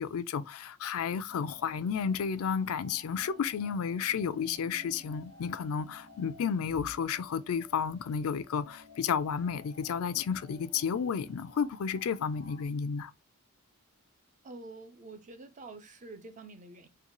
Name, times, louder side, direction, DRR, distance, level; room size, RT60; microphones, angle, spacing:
voice 1, 0.0-13.1, left 6 dB, 65° left, 0.4 m, -32 dB
sound 1, 1.3-12.7, left 1 dB, 85° right, 1.3 m, -55 dB
voice 2, 14.4-16.9, right 3 dB, 35° right, 0.5 m, -47 dB
3.9 x 2.2 x 2.9 m
head